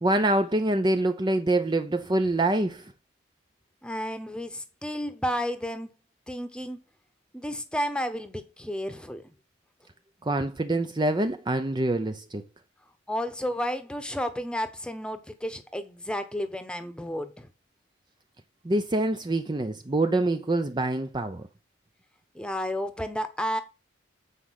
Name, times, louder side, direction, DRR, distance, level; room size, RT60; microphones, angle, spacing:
voice 1, 0.0-2.9 10.2-12.4 18.6-21.5, right 2 dB, 25° right, 0.6 m, -25 dB
voice 2, 3.8-5.9 6.3-6.8 7.3-9.3 13.1-17.5 22.3-23.6, equal, 5° left, 1.0 m, -32 dB
8.2 x 5.0 x 7.4 m
head